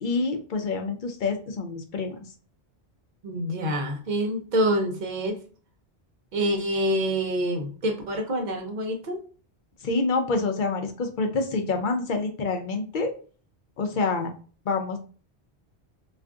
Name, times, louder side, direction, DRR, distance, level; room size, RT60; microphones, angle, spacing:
voice 1, 0.0-2.2 9.8-13.1 13.8-14.3 14.7-15.0, left 3 dB, 60° left, 5 dB, 0.6 m, -27 dB
voice 2, 3.2-5.4 6.3-9.2, equal, 50° right, 2 dB, 0.7 m, -26 dB
2.4 x 2.3 x 3.5 m, 0.39 s
omnidirectional pair, 1.1 m